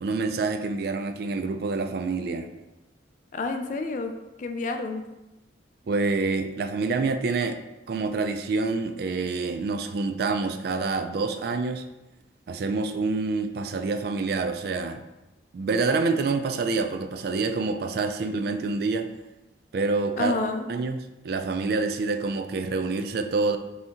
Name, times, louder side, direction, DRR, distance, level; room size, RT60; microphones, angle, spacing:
voice 1, 0.0-2.5 5.9-7.6 7.9-11.8 12.5-15.0 15.5-19.1 19.7-20.4 20.7-23.6, right 3 dB, 55° right, 8 dB, 0.3 m, -27 dB
voice 2, 3.3-5.1 20.2-20.7, left 3 dB, 45° left, 6 dB, 0.3 m, -29 dB
5.5 x 2.7 x 2.8 m, 1.0 s
head